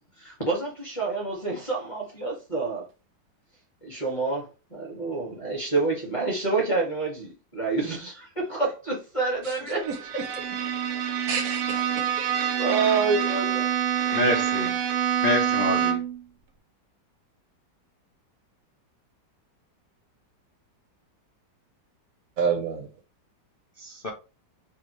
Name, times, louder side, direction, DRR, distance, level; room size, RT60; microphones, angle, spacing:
voice 1, 0.2-2.8 3.8-9.9 11.7-11.8 12.5-13.7, right 3 dB, 20° left, 1.4 m, -28 dB
voice 2, 9.4-10.0 11.3-12.3 22.4-22.9, right 6 dB, 60° right, 1.0 m, -30 dB
Bowed string instrument, 9.8-16.2, right 9 dB, 85° right, 0.6 m, -26 dB
voice 3, 14.1-14.7 15.2-16.0 23.8-24.1, left 2 dB, 80° left, 0.4 m, -26 dB
4.7 x 2.4 x 3.0 m
omnidirectional pair, 2.0 m